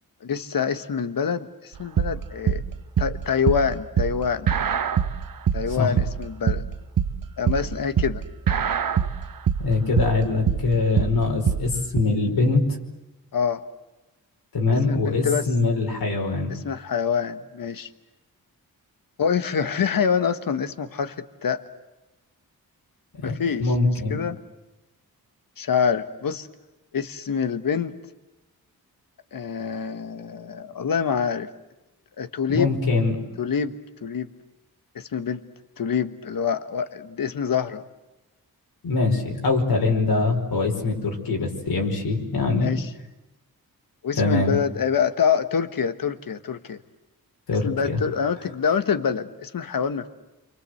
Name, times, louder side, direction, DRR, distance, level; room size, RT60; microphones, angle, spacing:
voice 1, 0.2-2.6 3.0-4.5 5.5-6.7 7.4-8.2 13.3-13.6 14.9-15.5 16.5-17.9 19.2-21.6 23.2-23.7 24.1-24.4 25.6-26.5 26.9-28.0 29.3-31.5 32.2-32.7 33.4-34.3 34.9-35.4 35.8-37.8 42.6-42.9 44.0-46.8 47.6-50.1, left 7 dB, 65° left, 11 dB, 1.5 m, -26 dB
sound 1, 1.8-12.0, right 8 dB, 65° right, 1.1 m, -24 dB
voice 2, 9.6-12.6 14.5-16.5 23.2-23.3 23.6-24.2 32.5-33.1 38.8-42.7 44.2-44.5 47.5-48.0, left 3 dB, 85° left, 1 dB, 5.1 m, -23 dB
29.5 x 24.5 x 7.9 m, 1.0 s
wide cardioid pair, 95°, 36 cm